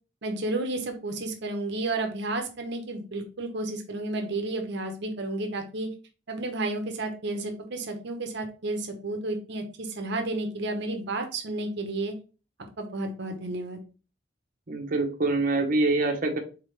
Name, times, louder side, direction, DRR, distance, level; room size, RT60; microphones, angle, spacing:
voice 1, 0.2-5.9 6.3-12.1 12.8-13.8, right 2 dB, 65° right, 4 dB, 0.8 m, -32 dB
voice 2, 14.7-16.4, right 2 dB, 50° right, 3 dB, 1.0 m, -25 dB
4.0 x 3.6 x 3.2 m, 0.34 s
head